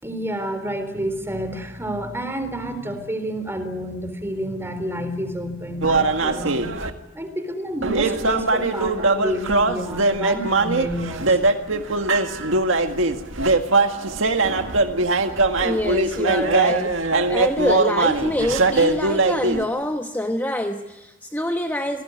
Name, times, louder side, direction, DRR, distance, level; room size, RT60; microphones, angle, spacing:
voice 1, 0.0-6.8 7.1-11.4, equal, 15° right, 9 dB, 3.8 m, -29 dB
sound 1, 5.8-6.9 7.8-19.6, right 3 dB, 80° right, 1.9 m, -21 dB
voice 2, 15.6-22.0, left 1 dB, 10° left, 4 dB, 1.1 m, -26 dB
27.5 x 19.5 x 9.7 m, 1.0 s
head